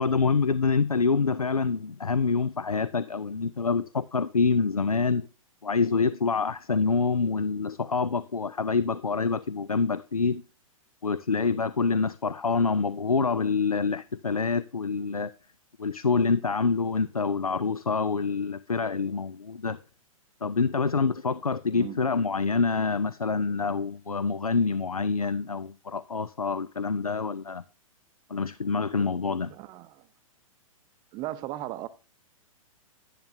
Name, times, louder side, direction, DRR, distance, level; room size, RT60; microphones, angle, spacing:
voice 1, 0.0-5.3 5.6-10.4 11.0-15.3 15.8-19.8 20.4-27.6 28.3-29.5, left 4 dB, 90° left, 0.4 m, -26 dB
voice 2, 21.7-22.0 29.5-30.1 31.1-31.9, right 15 dB, 25° right, 0.6 m, -37 dB
10.5 x 10.5 x 2.6 m
figure-of-eight pair, 115°, 18 cm